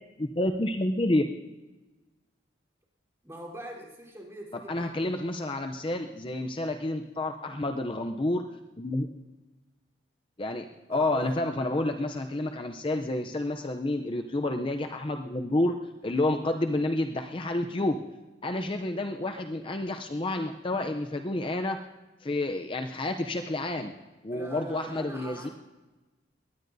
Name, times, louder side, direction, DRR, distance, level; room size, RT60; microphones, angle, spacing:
voice 1, 0.2-1.2 4.7-8.4 8.8-9.1 10.4-15.7 16.0-18.0 18.4-21.8 22.2-23.9 24.2-25.5, left 1 dB, 30° left, 5 dB, 0.6 m, -29 dB
voice 2, 3.2-4.8 10.9-11.3 24.3-25.5, right 1 dB, 15° right, -3 dB, 3.7 m, -41 dB
22.0 x 18.5 x 2.7 m, 1.1 s
head